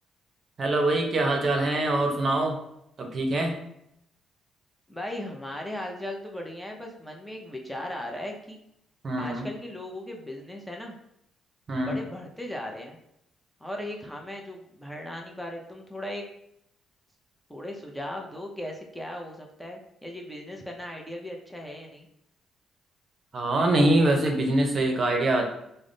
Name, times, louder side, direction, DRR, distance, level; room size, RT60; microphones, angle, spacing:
voice 1, 0.6-2.6 3.0-3.6 9.0-9.5 11.7-12.0 23.3-25.5, right 1 dB, 45° right, 2 dB, 0.7 m, -24 dB
voice 2, 4.9-8.6 9.2-10.9 11.8-13.0 13.6-16.2 17.5-22.1, left 1 dB, 5° left, 1 dB, 0.6 m, -37 dB
3.4 x 2.1 x 3.9 m, 0.78 s
cardioid pair, 90°, 0 cm